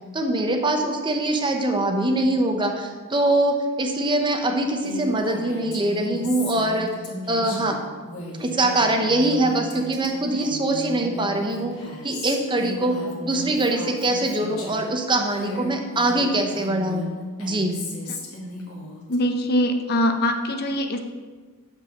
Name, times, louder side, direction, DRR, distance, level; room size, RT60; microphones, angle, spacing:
voice 1, 0.1-6.9 7.3-7.8 8.4-11.7 12.0-13.0 13.2-17.0 17.4-17.8, right 1 dB, 20° right, 3 dB, 0.8 m, -23 dB
Female speech woman speaking, 4.8-14.9 15.3-19.2, left 1 dB, 80° left, 1.7 m, -36 dB
voice 2, 19.1-21.0, left 1 dB, 45° left, 5 dB, 0.7 m, -22 dB
7.0 x 5.3 x 6.4 m, 1.4 s
head